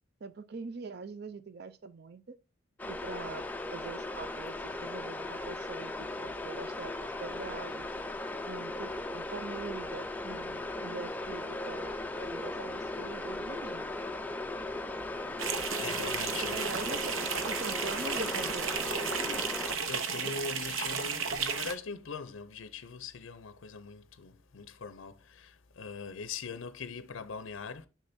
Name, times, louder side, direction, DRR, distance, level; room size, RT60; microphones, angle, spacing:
voice 1, 0.2-2.4 2.8-8.1 8.4-14.0 16.5-17.1 17.5-19.4, right 4 dB, 50° right, 0.5 m, -43 dB
sound 1, 2.8-19.8, left 2 dB, 10° left, 0.4 m, -37 dB
voice 2, 15.3-16.6 19.9-27.9, left 5 dB, 70° left, 0.5 m, -42 dB
sound 2, 15.4-21.7, right 6 dB, 75° right, 0.9 m, -33 dB
6.7 x 6.3 x 2.7 m
head